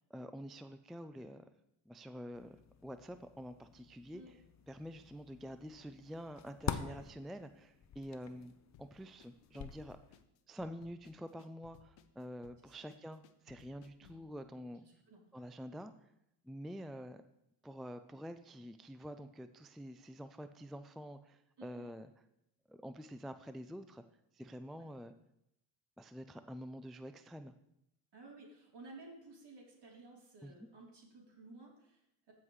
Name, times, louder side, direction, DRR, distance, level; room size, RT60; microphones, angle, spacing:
voice 1, 0.0-1.4 1.9-2.6 2.8-4.2 4.7-10.0 10.5-14.8 15.3-15.9 16.4-17.2 17.6-22.1 22.7-24.0 24.3-25.1 26.0-27.5 30.4-30.5, equal, ahead, 10 dB, 0.3 m, -47 dB
sound 1, 2.3-10.2, left 7 dB, 35° left, 0.7 m, -47 dB
sound 2, 8.7-14.3, left 9 dB, 70° left, 0.9 m, -63 dB
voice 2, 14.8-15.2 21.6-21.9 24.7-24.9 28.1-32.3, right 2 dB, 60° right, -2 dB, 3.4 m, -55 dB
15.0 x 5.7 x 3.2 m, 0.80 s
supercardioid pair, 60°, 47 cm